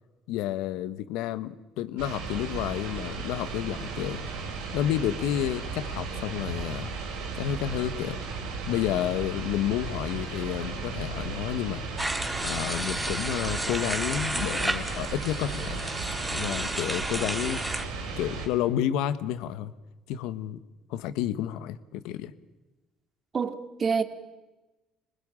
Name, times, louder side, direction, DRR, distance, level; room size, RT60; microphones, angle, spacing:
voice 1, 0.3-4.2 4.7-6.9 7.3-8.2 8.7-11.8 12.4-15.8 16.3-17.7 18.2-19.7 20.1-20.6 20.9-22.3, left 11 dB, 80° left, 1.2 m, -30 dB
sound 1, 2.0-18.5, right 4 dB, 90° right, 4.8 m, -35 dB
sound 2, 12.0-17.9, right 1 dB, 5° right, 2.2 m, -32 dB
voice 2, 23.3-24.0, right 5 dB, 40° right, 2.3 m, -27 dB
26.0 x 20.0 x 8.8 m
supercardioid pair, 85°, 0 cm